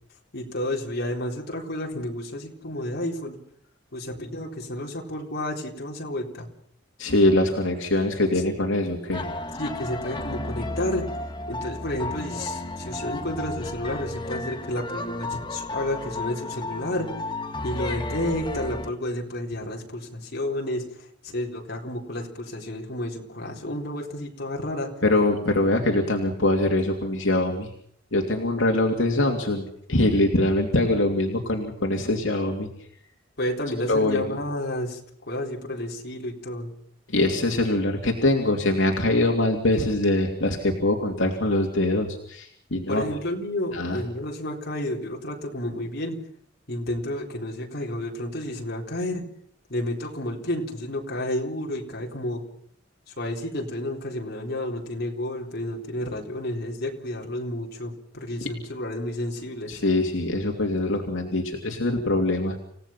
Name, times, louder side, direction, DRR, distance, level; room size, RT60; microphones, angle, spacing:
voice 1, 0.3-3.4 3.9-6.5 9.5-11.0 11.5-17.1 17.6-24.9 33.4-35.0 35.3-36.7 42.9-46.2 46.7-49.2 49.7-52.4 53.1-59.8, left 1 dB, 55° left, 0 dB, 4.1 m, -31 dB
voice 2, 7.0-9.2 25.0-27.7 28.1-29.6 29.9-32.7 33.9-34.2 37.1-43.0 43.7-44.0 59.7-62.6, left 1 dB, 75° left, 1 dB, 2.9 m, -23 dB
sound 1, 9.1-18.9, left 2 dB, 25° left, 1.7 m, -33 dB
29.0 x 17.0 x 5.9 m, 0.67 s
head